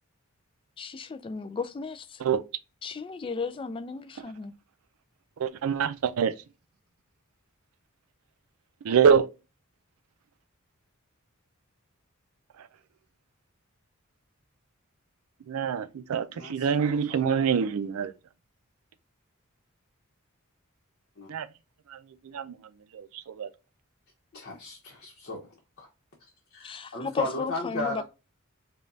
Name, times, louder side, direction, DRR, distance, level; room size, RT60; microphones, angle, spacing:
voice 1, 0.8-2.2 2.8-4.5 26.6-28.0, left 5 dB, 25° left, 0.3 m, -34 dB
voice 2, 5.4-6.3 8.8-9.3 12.6-12.7 15.5-18.1 21.3-21.5 21.9-22.0 22.2-22.5 22.9-23.5, right 7 dB, 80° right, 0.4 m, -25 dB
voice 3, 16.3-17.2 17.5-17.6 21.2-21.3 24.3-25.9 26.5-28.0, left 2 dB, 50° left, 0.9 m, -36 dB
5.0 x 2.3 x 2.6 m
head